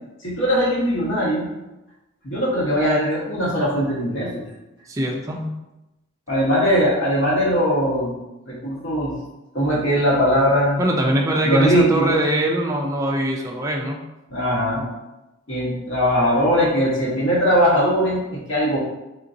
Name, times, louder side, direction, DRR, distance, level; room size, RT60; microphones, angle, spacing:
voice 1, 0.2-1.5 2.2-4.4 6.3-8.2 8.5-9.1 9.5-10.8 11.4-12.2 14.3-14.8 15.5-18.8, equal, 55° left, -5 dB, 1.3 m, -20 dB
voice 2, 4.9-5.5 10.8-14.0, right 1 dB, 15° right, 0 dB, 0.3 m, -22 dB
3.9 x 3.7 x 2.6 m, 0.98 s
head